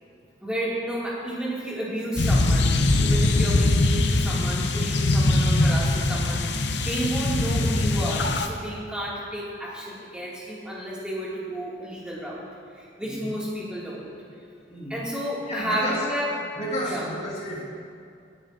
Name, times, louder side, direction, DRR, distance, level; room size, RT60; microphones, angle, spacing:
voice 1, 0.4-12.4 12.7-14.0 14.9-16.3 16.8-17.1, equal, 5° right, -7 dB, 2.4 m, -31 dB
sound 1, 2.2-8.5, left 2 dB, 70° left, 0.7 m, -22 dB
voice 2, 13.0-13.4 14.7-15.0 15.5-16.0 16.5-17.6, equal, 40° left, -6 dB, 2.5 m, -32 dB
20.0 x 10.0 x 2.7 m, 2.4 s
head